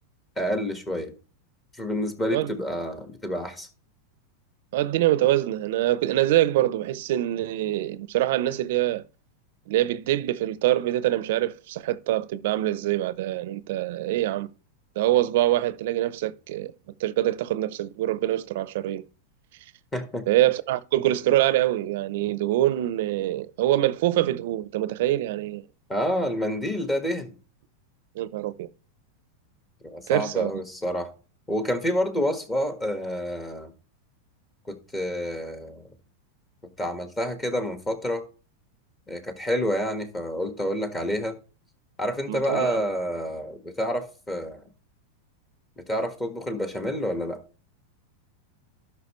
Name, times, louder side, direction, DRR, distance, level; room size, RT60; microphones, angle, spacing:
voice 1, 0.4-1.1 1.8-3.7 19.9-20.2 25.9-27.4 29.8-31.1 31.5-33.7 34.7-35.9 36.8-38.2 39.1-41.3 42.0-44.7 45.8-47.4, equal, 15° left, 1.6 m, -28 dB
voice 2, 4.7-9.0 9.7-14.5 15.0-16.7 17.0-19.0 20.3-25.6 28.2-28.7 30.1-30.5 42.3-42.8, right 14 dB, 65° right, 0.6 m, -24 dB
12.0 x 5.6 x 3.1 m
supercardioid pair, 130°, 0 cm